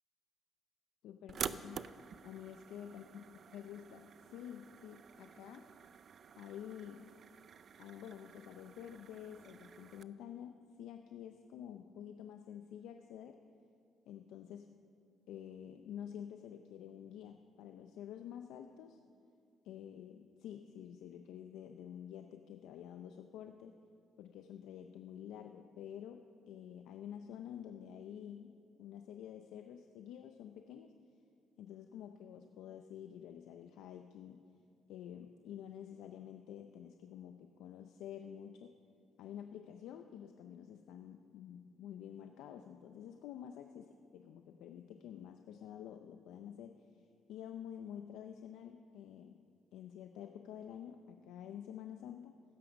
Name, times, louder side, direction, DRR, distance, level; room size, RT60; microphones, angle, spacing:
voice 1, 1.0-3.2 3.5-5.7 6.4-7.1 7.8-13.4 14.1-14.8 15.3-19.0 19.6-23.8 24.2-30.9 31.6-34.4 34.9-38.8 39.2-43.9 44.1-49.4 49.7-52.4, left 9 dB, 90° left, 6 dB, 0.6 m, -49 dB
sound 1, 1.3-10.0, right 7 dB, 55° right, 0.5 m, -49 dB
16.0 x 13.0 x 5.3 m, 2.4 s
cardioid pair, 90°, 0 cm